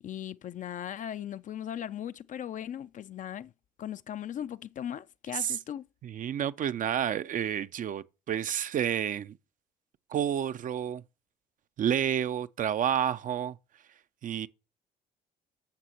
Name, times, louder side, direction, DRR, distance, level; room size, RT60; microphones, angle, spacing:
voice 1, 0.0-3.5 3.8-5.8, left 10 dB, 40° left, 0.4 m, -38 dB
voice 2, 6.0-9.4 10.1-11.0 11.8-13.6 14.2-14.5, right 9 dB, 40° right, 0.5 m, -30 dB
11.0 x 7.4 x 2.9 m
hypercardioid pair, 50°, 20 cm